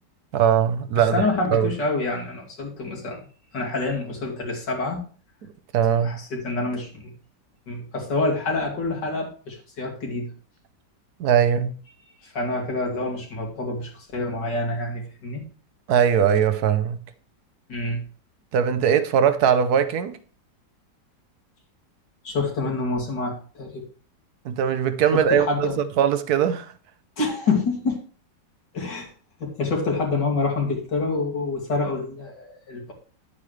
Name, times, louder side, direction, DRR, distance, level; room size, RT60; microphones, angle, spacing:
voice 1, 0.3-1.2 1.5-1.7 5.7-6.2 11.2-11.8 15.9-17.0 18.5-20.2 24.4-25.7 26.0-26.7, right 8 dB, 65° right, 1.2 m, -20 dB
voice 2, 1.1-3.2 3.5-5.0 6.0-7.1 7.7-10.3 12.1-15.4 17.7-18.0 22.2-23.8 25.1-25.8 27.2-28.0 28.7-29.1 29.4-32.9, left 3 dB, 75° left, 3.0 m, -27 dB
10.5 x 8.5 x 3.2 m
omnidirectional pair, 1.9 m